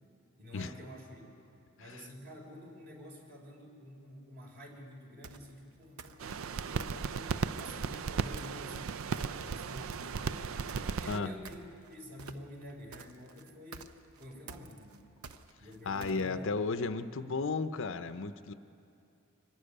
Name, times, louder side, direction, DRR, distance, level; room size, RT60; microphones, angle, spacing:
voice 1, 0.4-1.2 1.8-10.5 10.9-13.9 14.2-15.0 15.6-16.5, equal, 45° right, 1 dB, 3.7 m, -49 dB
sound 1, 5.2-5.5 6.0-6.5 6.8-7.9 8.4-8.8 9.1-9.6 9.9-16.5, right 4 dB, 90° right, 0.9 m, -48 dB
sound 2, 6.2-11.2, right 5 dB, 70° right, 0.4 m, -36 dB
voice 2, 15.8-18.5, left 4 dB, 60° left, 11 dB, 0.6 m, -34 dB
24.5 x 12.0 x 10.0 m, 2.6 s
head